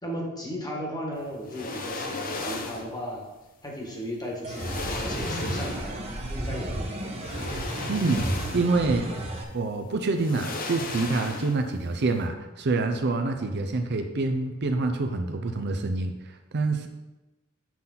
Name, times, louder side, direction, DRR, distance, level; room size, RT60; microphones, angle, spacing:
voice 1, 0.0-3.2 3.6-7.0, equal, 20° left, -1 dB, 1.4 m, -36 dB
sound 1, 1.4-3.0 4.0-4.1 4.5-6.1 7.2-8.9 9.2-9.3 10.1-11.8 12.0-12.2, left 3 dB, 45° left, 0.7 m, -35 dB
sound 2, 4.4-9.4, right 1 dB, 30° right, 0.9 m, -33 dB
voice 2, 7.9-8.3 8.5-9.1 9.5-16.9, right 3 dB, 55° right, 6 dB, 0.6 m, -26 dB
6.0 x 5.8 x 3.8 m, 1.0 s
head